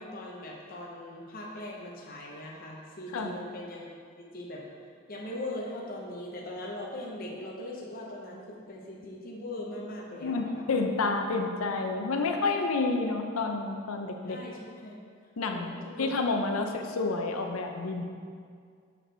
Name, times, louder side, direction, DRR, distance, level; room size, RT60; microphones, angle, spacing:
voice 1, 0.0-3.9 4.2-4.7 5.1-10.6 12.2-12.3 14.2-15.0 15.5-16.1 16.6-16.7, left 1 dB, 45° left, -2 dB, 0.9 m, -40 dB
voice 2, 10.2-14.4 15.4-18.0, left 3 dB, 85° left, 4 dB, 0.6 m, -29 dB
7.2 x 6.0 x 3.3 m, 2.1 s
head